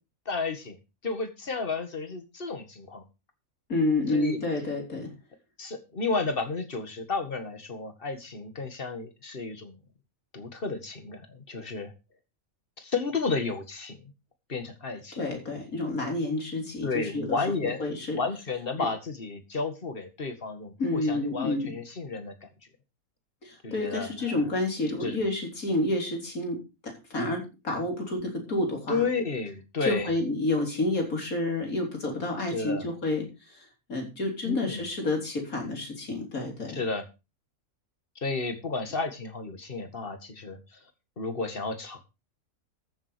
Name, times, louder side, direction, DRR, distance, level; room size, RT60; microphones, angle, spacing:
voice 1, 0.3-0.8 1.0-3.0 4.1-4.4 5.6-9.8 10.3-11.9 12.8-14.0 14.5-15.2 16.8-17.8 18.1-22.5 23.6-24.4 25.0-25.2 28.9-30.1 32.5-32.8 34.4-34.9 36.7-37.1 38.2-40.8 41.2-42.0, left 4 dB, 40° left, 8 dB, 2.1 m, -32 dB
voice 2, 3.7-5.1 15.2-18.2 18.8-18.9 20.8-21.7 23.4-26.6 27.1-29.0 29.8-36.8, left 2 dB, 75° left, 2 dB, 4.2 m, -29 dB
14.0 x 7.3 x 5.1 m, 0.28 s
omnidirectional pair, 1.5 m